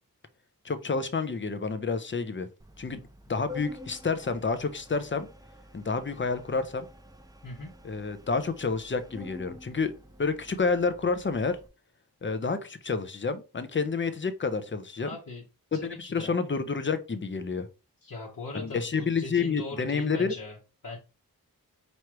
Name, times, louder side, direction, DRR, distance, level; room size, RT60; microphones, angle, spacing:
voice 1, 0.6-2.5 2.8-3.0 3.3-5.3 5.7-6.9 7.8-9.9 10.2-11.6 12.2-15.1 15.7-17.7 18.5-20.3, left 4 dB, 30° left, 0.6 m, -29 dB
Organ, 2.6-11.7, left 2 dB, 10° right, 0.5 m, -49 dB
voice 2, 15.0-15.4 15.7-16.3 18.0-20.6 20.8-21.0, left 2 dB, 60° left, 1.2 m, -40 dB
4.8 x 3.1 x 3.0 m
cardioid pair, 55°, 37 cm